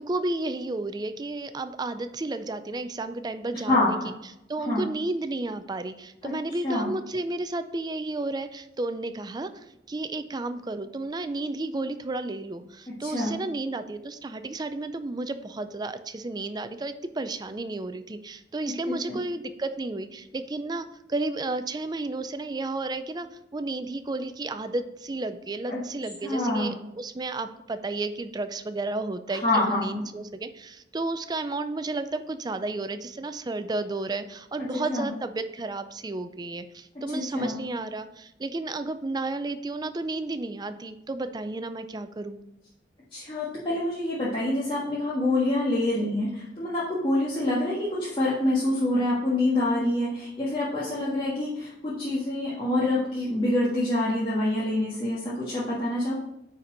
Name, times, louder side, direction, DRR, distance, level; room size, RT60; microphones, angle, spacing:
voice 1, 0.0-4.0 4.5-42.4, right 2 dB, 25° right, 10 dB, 0.4 m, -32 dB
voice 2, 3.7-4.1 4.7-4.8 6.2-6.9 13.0-13.3 18.9-19.2 25.7-25.8 26.2-26.7 29.3-30.0 34.9-35.1 37.1-37.6 43.1-56.1, left 1 dB, 30° left, -9 dB, 1.5 m, -26 dB
9.5 x 4.3 x 3.9 m, 0.86 s
head